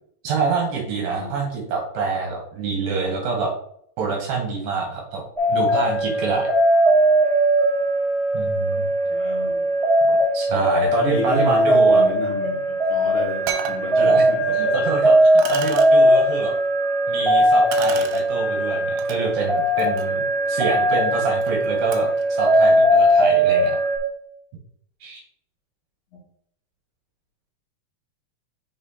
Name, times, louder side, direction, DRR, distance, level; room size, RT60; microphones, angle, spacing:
voice 1, 0.2-3.5 4.0-5.2 5.5-6.5 8.3-8.9 10.3-12.1 14.0-14.2 14.5-16.5 17.1-23.8 25.0-25.2, right 4 dB, 65° right, 0 dB, 2.7 m, -26 dB
sound 1, 5.4-24.0, right 1 dB, ahead, 0.7 m, -19 dB
voice 2, 9.1-9.7 10.5-14.7, left 2 dB, 40° left, -7 dB, 3.2 m, -30 dB
sound 2, 12.9-13.0 13.5-13.8 14.7-14.8 15.4-15.9 17.7-18.2 19.0-19.2 19.7-22.2, right 8 dB, 85° right, 2.7 m, -33 dB
6.1 x 4.2 x 4.1 m, 0.68 s
omnidirectional pair, 4.9 m